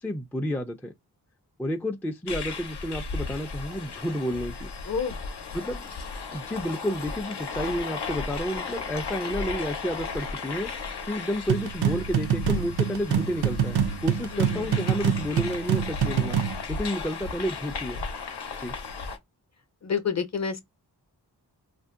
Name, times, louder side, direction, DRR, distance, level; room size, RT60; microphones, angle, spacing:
voice 1, 0.0-0.9 1.6-4.7 5.5-5.9 6.3-10.7 11.0-16.4 16.7-18.0 18.6-18.8, equal, 5° left, 0.4 m, -31 dB
sound 1, 2.3-19.2, left 4 dB, 80° left, 0.7 m, -35 dB
voice 2, 4.9-5.2 14.3-14.7 19.8-20.6, left 6 dB, 40° left, 0.7 m, -29 dB
sound 2, 11.5-16.6, right 8 dB, 70° right, 0.6 m, -26 dB
2.6 x 2.1 x 3.6 m
cardioid pair, 55°, 40 cm